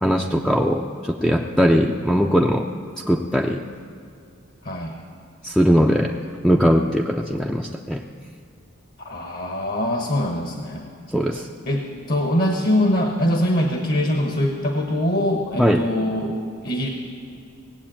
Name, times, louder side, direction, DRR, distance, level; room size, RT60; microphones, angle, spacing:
voice 1, 0.0-2.7 3.1-3.6 5.4-6.1 6.4-8.0 11.1-11.5 15.6-15.8, equal, 5° left, 1 dB, 0.4 m, -20 dB
voice 2, 4.6-5.0 9.0-10.9 11.7-16.9, left 1 dB, 50° left, 3 dB, 1.1 m, -23 dB
18.0 x 7.9 x 8.9 m, 2.5 s
head